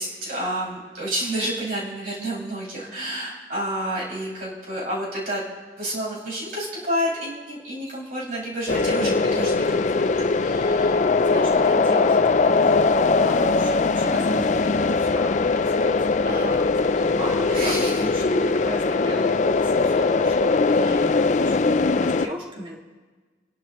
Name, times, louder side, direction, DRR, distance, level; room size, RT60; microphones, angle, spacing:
voice 1, 0.0-5.4 5.8-11.0 16.2-16.7 17.5-18.0 20.8-21.0, right 1 dB, 55° right, -6 dB, 5.9 m, -30 dB
sound 1, 8.7-22.3, left 3 dB, 45° left, 0.4 m, -21 dB
voice 2, 10.7-22.8, equal, 30° right, -2 dB, 2.1 m, -36 dB
28.0 x 11.5 x 3.0 m, 1.4 s
head